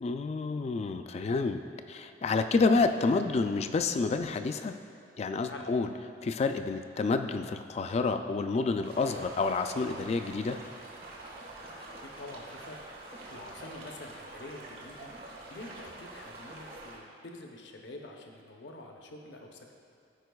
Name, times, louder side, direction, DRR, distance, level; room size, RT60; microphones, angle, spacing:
voice 1, 0.0-1.6 1.9-4.8 5.2-5.9 6.2-10.6, left 4 dB, 35° left, 8 dB, 0.3 m, -29 dB
sound 1, 8.8-17.0, right 2 dB, 55° right, 1.3 m, -46 dB
voice 2, 12.0-15.1 15.5-19.7, left 2 dB, 75° left, 2 dB, 0.7 m, -47 dB
14.0 x 4.8 x 2.3 m, 2.6 s
head